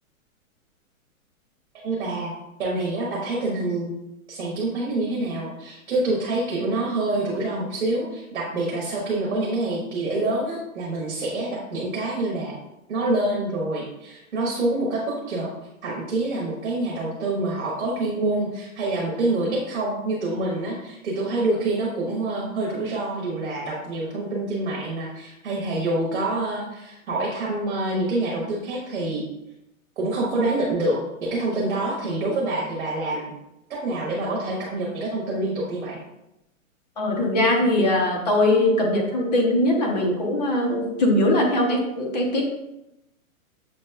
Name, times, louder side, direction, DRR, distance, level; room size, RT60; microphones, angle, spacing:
voice 1, 1.8-2.3 2.6-3.9 4.3-12.5 12.9-15.5 15.8-29.2 30.0-33.3 33.7-36.0, right 2 dB, 55° right, -3 dB, 1.3 m, -26 dB
voice 2, 37.0-42.4, left 1 dB, 30° left, -1 dB, 0.8 m, -21 dB
7.1 x 3.0 x 2.3 m, 0.89 s
hypercardioid pair, 180°, 42 cm